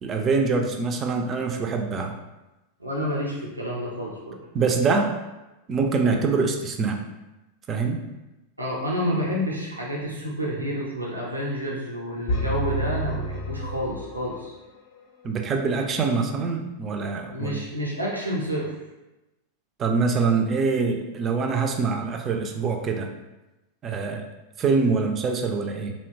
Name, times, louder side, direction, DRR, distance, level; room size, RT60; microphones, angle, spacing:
voice 1, 0.0-2.2 4.5-5.1 5.7-7.0 7.7-8.0 15.2-17.6 19.8-23.1 23.8-24.3 24.6-25.9, right 4 dB, 25° right, 3 dB, 0.3 m, -24 dB
voice 2, 2.8-4.4 8.6-14.6 17.3-18.7, equal, 85° right, -4 dB, 0.5 m, -29 dB
sound 1, 12.3-14.4, right 1 dB, 50° left, 0.4 m, -29 dB
2.7 x 2.1 x 2.8 m, 1.0 s
figure-of-eight pair, 90°, 0 cm